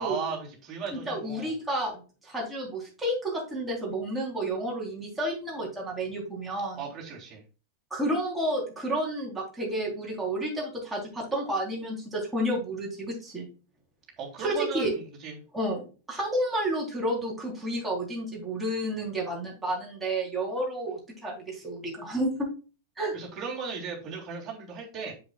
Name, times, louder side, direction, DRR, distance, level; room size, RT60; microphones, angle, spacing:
voice 1, 0.0-1.5 6.8-7.4 14.2-15.4 23.1-25.1, right 5 dB, 25° right, -3 dB, 3.4 m, -36 dB
voice 2, 0.9-6.8 7.9-13.5 14.4-14.9 15.5-15.8 16.1-22.3 23.0-23.1, right 1 dB, 10° right, -3 dB, 3.9 m, -31 dB
7.7 x 6.6 x 2.4 m, 0.34 s
figure-of-eight pair, 95°, 0 cm